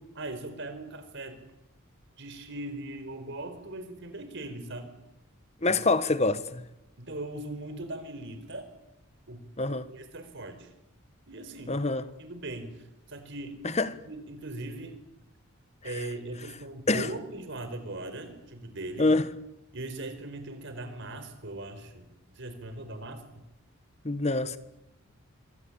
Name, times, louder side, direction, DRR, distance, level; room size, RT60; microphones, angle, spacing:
voice 1, 0.0-1.4 2.2-4.9 5.7-5.8 7.0-8.7 9.3-9.5 9.9-10.7 11.3-11.8 12.2-12.8 13.1-13.6 14.0-15.0 15.8-19.1 19.7-22.1 22.3-23.4, right 2 dB, 55° right, 4.5 m, -39 dB
voice 2, 5.6-6.6 9.6-9.9 11.7-12.0 13.6-13.9 15.8-15.9 16.9-17.1 19.0-19.3 24.0-24.6, left 2 dB, 30° left, 1.3 m, -25 dB
26.5 x 23.0 x 8.7 m
head